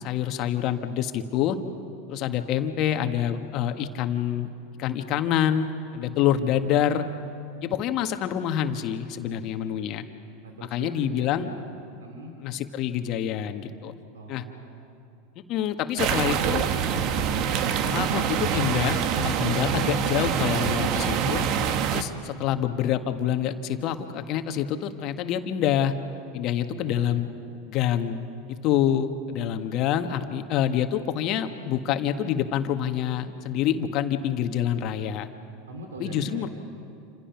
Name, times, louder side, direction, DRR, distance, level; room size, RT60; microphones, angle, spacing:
voice 1, 0.0-1.6 2.1-4.5 4.8-7.0 7.6-10.0 10.7-11.5 12.4-13.9 14.3-14.4 15.5-16.7 17.8-21.4 21.9-25.9 26.3-27.3 27.7-35.3 36.0-36.5, left 10 dB, 50° left, 7 dB, 1.6 m, -26 dB
voice 2, 10.4-11.6 12.0-12.4 14.1-14.8 26.7-27.1 35.7-36.5, right 2 dB, 85° right, 2 dB, 2.9 m, -41 dB
sound 1, 16.0-22.0, right 7 dB, 50° right, 1.5 m, -25 dB
28.0 x 27.0 x 6.0 m, 2.5 s
hypercardioid pair, 95°, 0 cm